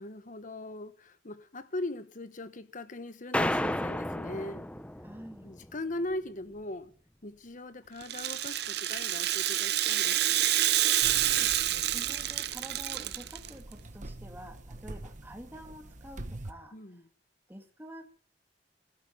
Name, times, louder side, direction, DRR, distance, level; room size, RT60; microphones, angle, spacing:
voice 1, 0.0-4.7 5.4-6.9 7.2-10.5 16.7-17.1, left 1 dB, 45° left, 1.3 m, -40 dB
sound 1, 3.3-5.7, left 1 dB, 5° left, 0.7 m, -32 dB
voice 2, 5.0-5.5 11.2-16.8 17.5-18.1, equal, 10° right, 2.1 m, -48 dB
Rattle (instrument), 8.0-13.5, right 13 dB, 65° right, 0.8 m, -28 dB
sound 2, 11.0-16.5, right 1 dB, 45° right, 1.3 m, -45 dB
16.0 x 9.0 x 8.6 m
head